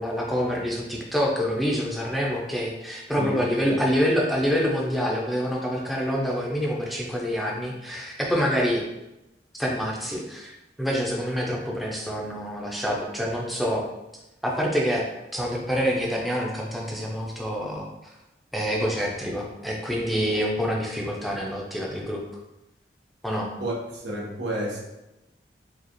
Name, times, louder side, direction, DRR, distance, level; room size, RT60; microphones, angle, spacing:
voice 1, 0.0-8.8 9.5-13.8 14.4-15.1 15.3-17.9 18.5-22.2 23.2-23.5, equal, ahead, -2 dB, 0.5 m, -26 dB
voice 2, 3.1-3.4 3.7-3.8 23.6-24.8, right 1 dB, 90° right, -3 dB, 1.0 m, -31 dB
4.8 x 2.4 x 2.9 m, 0.94 s
head